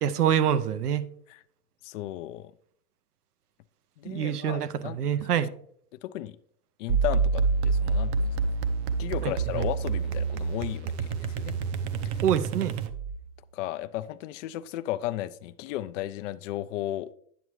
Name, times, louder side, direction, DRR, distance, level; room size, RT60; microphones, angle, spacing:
voice 1, 0.0-1.1 4.0-5.5 9.2-9.7 12.2-12.7, right 9 dB, 80° right, 0.7 m, -26 dB
voice 2, 1.8-2.5 4.0-5.0 6.0-6.4 6.8-8.4 9.0-11.6 12.0-12.2 13.5-17.1, left 14 dB, 55° left, 0.5 m, -34 dB
sound 1, 6.9-13.2, right 4 dB, 45° right, 0.7 m, -27 dB
9.2 x 7.3 x 3.1 m
hypercardioid pair, 110°, 45 cm